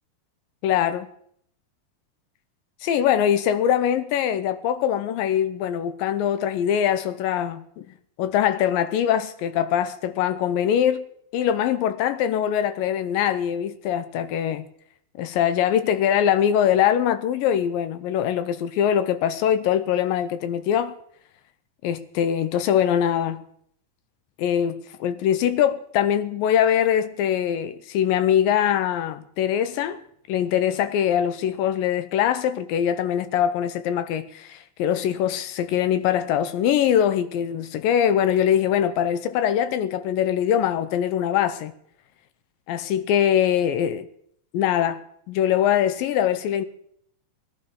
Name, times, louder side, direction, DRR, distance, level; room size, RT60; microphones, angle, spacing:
voice 1, 0.6-1.1 2.8-7.9 8.2-11.0 11.3-14.7 15.2-20.9 21.8-23.4 24.4-30.0 30.3-41.7 42.7-44.1 44.5-45.0 45.3-46.7, left 9 dB, 75° left, 2.3 m, -22 dB
21.0 x 11.5 x 3.7 m
omnidirectional pair, 4.3 m